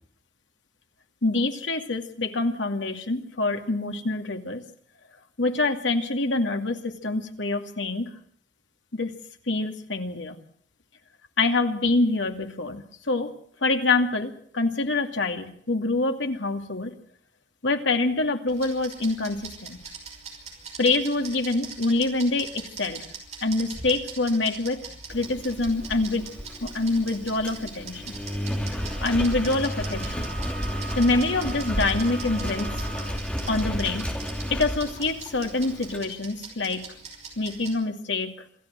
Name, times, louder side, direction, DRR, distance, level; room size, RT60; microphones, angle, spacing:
voice 1, 1.2-4.6 5.4-8.1 8.9-9.1 9.5-10.4 11.4-13.3 13.6-16.9 17.6-19.8 20.8-23.0 23.4-26.3 26.6-28.2 29.0-30.3 31.0-32.7 33.5-34.1 34.5-36.8 37.4-38.4, left 2 dB, 85° left, 5 dB, 2.5 m, -26 dB
sound 1, 18.5-37.7, right 5 dB, 35° right, 5.7 m, -42 dB
Engine, 25.1-36.0, equal, 5° left, 2.9 m, -32 dB
Wind instrument woodwind instrument, 28.7-33.3, right 5 dB, 60° right, 1.6 m, -42 dB
27.0 x 14.0 x 7.6 m, 0.64 s
head